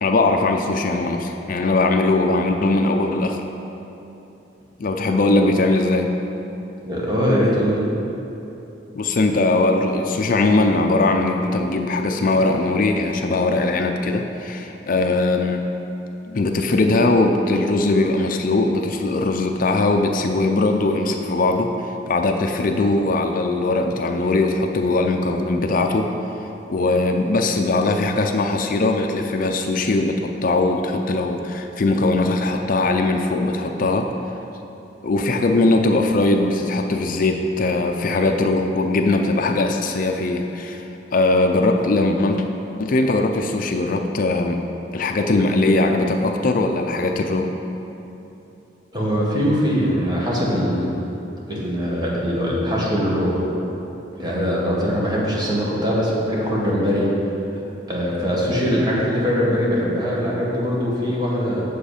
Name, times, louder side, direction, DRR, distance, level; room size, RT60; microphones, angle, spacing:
voice 1, 0.0-3.4 4.8-6.1 9.0-15.6 16.3-21.7 22.1-26.1 26.7-34.1 35.0-42.4 42.8-44.6 44.9-47.5 54.2-54.3, left 2 dB, 50° left, 4 dB, 0.5 m, -20 dB
voice 2, 6.8-7.8 48.9-50.9 51.5-53.4 54.2-57.1 57.9-61.6, equal, 25° right, -5 dB, 1.6 m, -21 dB
7.8 x 6.8 x 5.0 m, 2.9 s
head